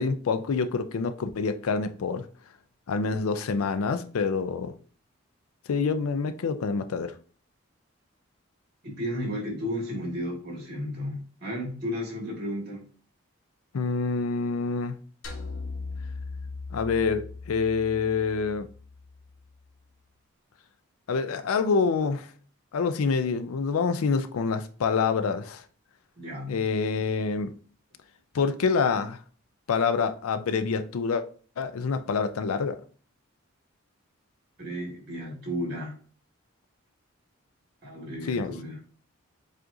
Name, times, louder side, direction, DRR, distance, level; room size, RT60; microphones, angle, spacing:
voice 1, 0.0-2.3 2.9-4.7 5.7-7.1 13.7-15.0 16.7-18.7 21.1-22.3 22.7-25.6 26.5-27.5 28.3-29.2 29.7-31.2 31.6-32.8 38.3-38.5, left 5 dB, 90° left, 0.4 m, -26 dB
voice 2, 8.8-12.9 26.2-26.7 34.6-35.9 37.8-38.8, equal, 50° right, 1.8 m, -33 dB
sound 1, 15.2-19.6, left 3 dB, 70° left, 1.0 m, -39 dB
7.4 x 2.5 x 2.6 m
head